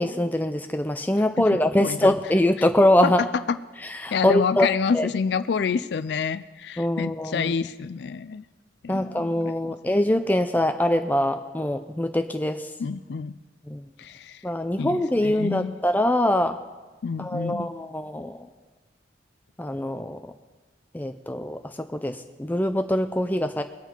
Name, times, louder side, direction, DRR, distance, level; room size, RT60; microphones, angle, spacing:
voice 1, 0.0-3.2 3.9-4.7 4.9-5.1 6.8-7.5 8.9-12.7 13.7-13.8 14.4-16.6 17.2-18.5 19.6-20.2 20.9-23.6, left 1 dB, 10° left, 7 dB, 0.4 m, -23 dB
voice 2, 1.4-2.1 2.6-2.7 3.0-3.6 4.1-8.4 8.8-9.6 12.8-13.3 14.0-14.4 14.8-15.8 17.0-17.7, left 5 dB, 65° left, 13 dB, 0.4 m, -28 dB
22.5 x 8.1 x 4.4 m, 1.3 s
head